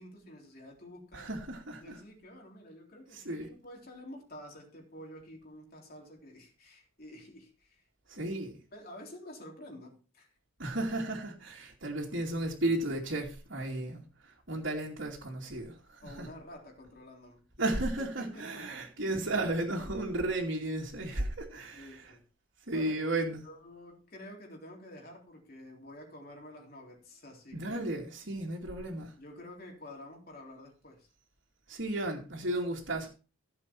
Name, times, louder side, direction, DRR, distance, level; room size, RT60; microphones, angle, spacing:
voice 1, 0.0-1.3 1.8-7.8 8.1-8.2 8.7-10.3 16.0-17.5 18.2-18.7 21.7-22.3 22.7-28.0 29.2-31.1, left 1 dB, 45° left, 3.6 m, -49 dB
voice 2, 1.1-2.0 3.1-3.5 8.1-8.5 10.6-16.3 17.6-22.1 22.7-23.4 27.5-29.1 31.7-33.1, right 1 dB, 55° right, 2.6 m, -34 dB
15.5 x 7.6 x 4.5 m
head